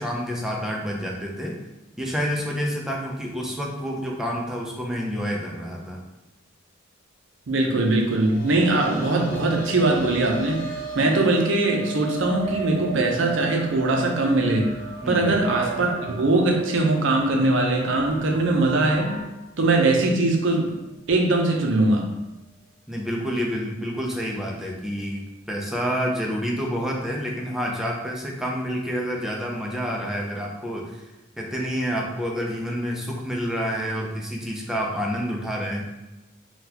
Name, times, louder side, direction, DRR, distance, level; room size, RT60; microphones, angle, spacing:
voice 1, 0.0-1.6 2.0-6.0 15.0-15.4 22.9-25.2 25.5-31.0 31.4-35.8, equal, ahead, -2 dB, 0.4 m, -28 dB
voice 2, 7.5-10.6 11.0-14.7 15.1-19.2 19.6-20.7 21.1-22.1, right 2 dB, 65° right, 1 dB, 0.5 m, -21 dB
sound 1, 7.9-19.3 19.6-19.7 21.3-21.4, right 2 dB, 75° left, 0.5 m, -38 dB
sound 2, 8.6-19.2, right 3 dB, 25° left, 1.1 m, -38 dB
3.8 x 2.3 x 2.8 m, 1.0 s
head